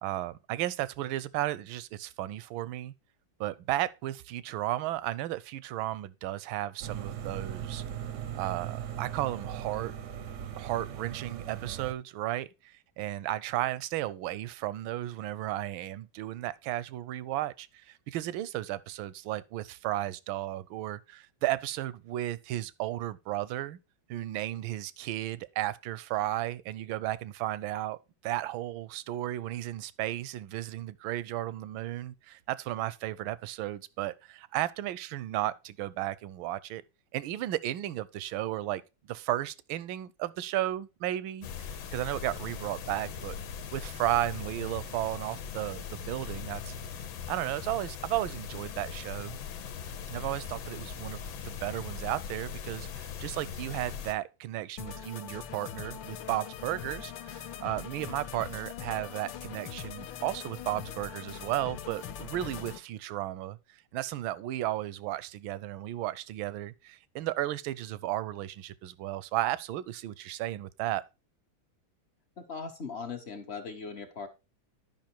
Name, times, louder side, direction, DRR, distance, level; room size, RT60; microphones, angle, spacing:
voice 1, 0.0-2.9 3.4-7.8 8.4-9.9 10.6-23.8 24.1-28.0 28.2-36.8 37.1-38.8 39.1-41.5 41.9-43.4 43.7-46.7 47.3-49.4 50.1-63.6 63.9-71.0, right 14 dB, 85° right, 1.4 m, -34 dB
sound 1, 6.8-11.9, right 9 dB, 65° right, 0.7 m, -39 dB
sound 2, 41.4-54.1, left 7 dB, 90° left, 1.7 m, -40 dB
sound 3, 54.8-62.8, left 8 dB, 70° left, 1.5 m, -42 dB
voice 2, 72.4-74.3, left 5 dB, 45° left, 0.8 m, -39 dB
10.5 x 5.5 x 4.4 m
omnidirectional pair, 2.2 m